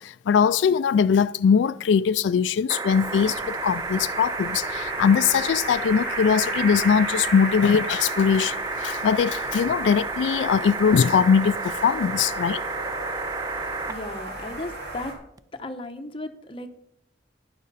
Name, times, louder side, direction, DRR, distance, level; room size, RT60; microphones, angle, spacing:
voice 1, 0.0-12.6, left 6 dB, 85° left, 0.3 m, -21 dB
sound 1, 2.7-13.9 15.4-15.5, right 4 dB, 20° right, 0.3 m, -32 dB
sound 2, 2.9-15.1, right 2 dB, 65° right, 3.4 m, -34 dB
voice 2, 13.8-15.1 15.5-16.7, left 2 dB, 30° left, 1.0 m, -35 dB
12.5 x 10.5 x 4.1 m
head